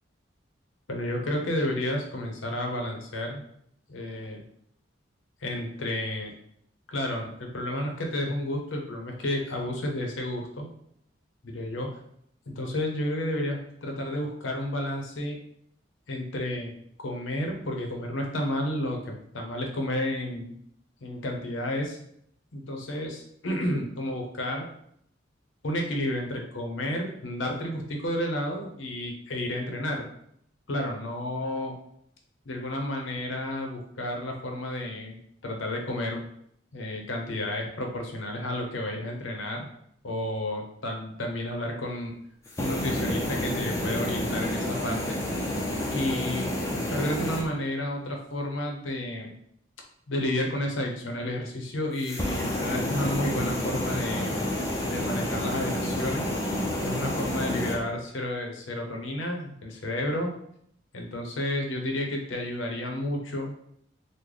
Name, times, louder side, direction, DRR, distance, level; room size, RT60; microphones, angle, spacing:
voice 1, 0.9-3.4 3.9-4.4 5.4-6.3 6.9-10.7 11.4-12.0 12.5-15.4 16.1-20.5 21.0-22.0 22.5-24.6 25.6-30.0 30.7-31.8 32.5-35.2 35.4-36.2 36.7-39.7 40.0-42.1 42.6-45.2 45.9-49.4 50.1-54.4 54.9-56.3 56.8-60.3 60.9-63.5, left 1 dB, 85° left, 2 dB, 0.7 m, -31 dB
sound 1, 42.5-47.5 52.0-57.8, left 1 dB, 15° left, 0.5 m, -29 dB
3.2 x 2.1 x 3.8 m, 0.70 s
head